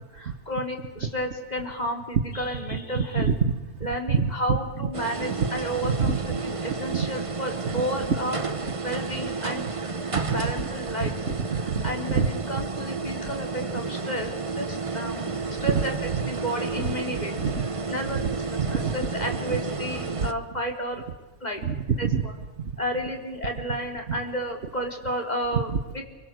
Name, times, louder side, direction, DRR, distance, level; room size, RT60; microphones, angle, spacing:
voice 1, 0.1-3.3 3.8-6.2 6.4-8.4 8.8-9.7 10.3-11.1 11.6-15.3 15.6-15.9 16.3-17.3 17.9-18.2 18.5-21.0 21.4-21.6 22.0-22.3 22.8-26.0, equal, 35° left, 2 dB, 4.3 m, -32 dB
voice 2, 2.7-3.5 4.1-4.9 5.3-5.5 5.8-6.4 6.9-7.1 7.7-7.8 10.1-10.5 11.0-11.8 12.1-12.3 15.7-15.8 16.1-16.2 16.8-16.9 17.4-17.7 18.1-18.2 18.6-19.1 19.5-19.6 21.6-22.2 24.1-24.2 25.5-25.8, right 6 dB, 70° right, 11 dB, 1.5 m, -26 dB
sound 1, 4.9-20.3, right 4 dB, 30° right, 1.1 m, -32 dB
29.0 x 24.5 x 7.9 m, 1.1 s
omnidirectional pair, 1.2 m